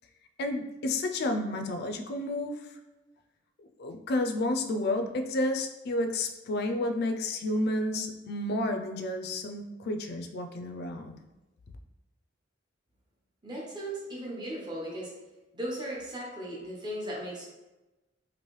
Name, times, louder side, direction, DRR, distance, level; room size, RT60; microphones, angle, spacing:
voice 1, 0.4-2.6 3.8-11.2, left 1 dB, 55° left, 5 dB, 0.4 m, -31 dB
voice 2, 13.4-15.1 15.5-17.4, right 1 dB, 25° right, -4 dB, 0.8 m, -37 dB
3.1 x 2.5 x 3.1 m, 1.1 s
head